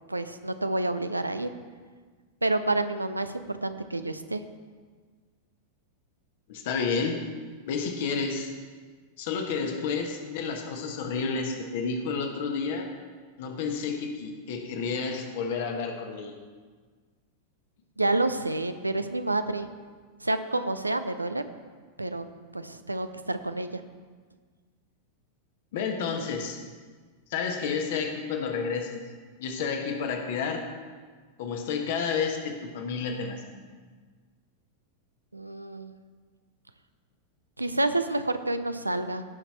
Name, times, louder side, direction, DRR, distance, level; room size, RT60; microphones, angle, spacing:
voice 1, 0.1-1.5 2.4-4.4 18.0-19.7 20.2-21.4 22.0-22.3 22.5-23.8 35.3-35.9 37.6-39.2, right 2 dB, 85° right, 10 dB, 0.6 m, -29 dB
voice 2, 6.5-7.2 7.7-8.5 9.2-12.9 13.4-16.4 25.7-26.6 27.3-29.1 29.4-30.7 31.4-33.6, left 5 dB, 55° left, 4 dB, 1.4 m, -30 dB
17.0 x 5.9 x 4.4 m, 1.5 s
figure-of-eight pair, 90°, 0 cm